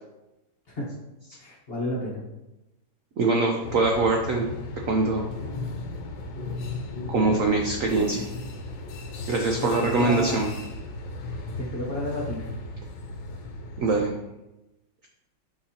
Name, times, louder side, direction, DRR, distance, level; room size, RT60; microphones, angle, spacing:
voice 1, 1.4-2.2 9.6-10.4 11.3-12.5, equal, 35° left, -4 dB, 1.2 m, -31 dB
voice 2, 3.2-4.4 4.9-5.2 7.1-8.2 9.3-10.5 13.8-14.1, right 3 dB, 70° right, 1 dB, 0.7 m, -23 dB
sound 1, 3.6-14.0, left 2 dB, 70° left, 1.3 m, -36 dB
6.8 x 5.2 x 2.8 m, 0.97 s
omnidirectional pair, 2.1 m